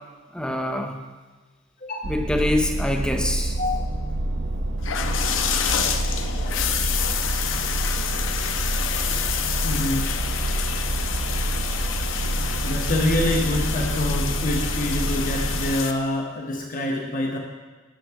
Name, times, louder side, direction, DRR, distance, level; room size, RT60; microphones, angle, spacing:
voice 1, 0.3-1.0 2.0-3.6, left 1 dB, 5° left, 3 dB, 0.5 m, -25 dB
sound 1, 2.0-15.7, right 1 dB, 55° right, 0.6 m, -27 dB
sound 2, 4.8-15.9, left 8 dB, 80° left, 0.6 m, -28 dB
voice 2, 9.6-10.1 12.6-17.4, left 1 dB, 45° left, 0 dB, 0.9 m, -26 dB
9.1 x 7.1 x 3.4 m, 1.3 s
head